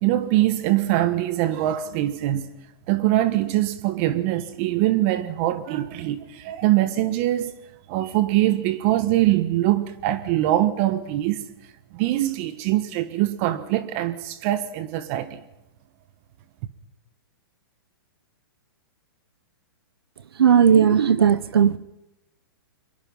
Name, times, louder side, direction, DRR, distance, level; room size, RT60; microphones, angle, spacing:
voice 1, 0.0-2.5 2.9-7.6 7.9-11.4 11.9-15.4, right 14 dB, 35° right, 1.5 m, -23 dB
voice 2, 20.4-21.8, right 8 dB, 85° right, 1.3 m, -16 dB
23.0 x 22.0 x 5.6 m
hypercardioid pair, 155°, 12 cm